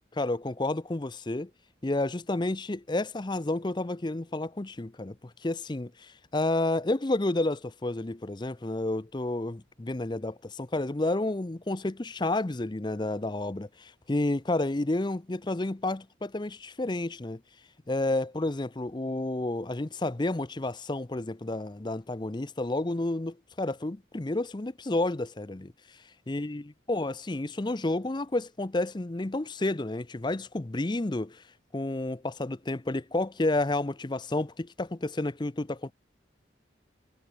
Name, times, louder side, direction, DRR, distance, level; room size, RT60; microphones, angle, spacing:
voice 1, 0.1-1.5 1.8-5.2 5.4-17.4 17.9-25.7 26.3-31.4 31.7-35.9, left 2 dB, 25° left, 0.6 m, -30 dB
head